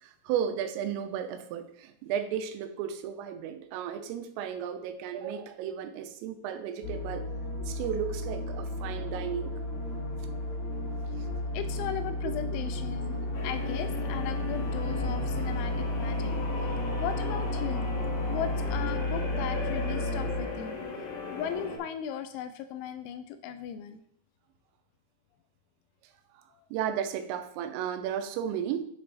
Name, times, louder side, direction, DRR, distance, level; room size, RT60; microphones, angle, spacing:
voice 1, 0.0-7.3 7.6-9.6 26.7-28.9, right 9 dB, 90° right, 8 dB, 3.4 m, -34 dB
sound 1, 6.8-20.4, left 1 dB, 45° left, 2.8 m, -32 dB
voice 2, 11.5-16.3 17.0-17.9 18.3-20.8 21.3-24.0 26.5-26.6, left 9 dB, 85° left, 9 dB, 2.8 m, -37 dB
sound 2, 13.3-21.8, left 4 dB, 65° left, 3.2 m, -38 dB
10.0 x 5.6 x 4.0 m, 0.67 s
omnidirectional pair, 5.7 m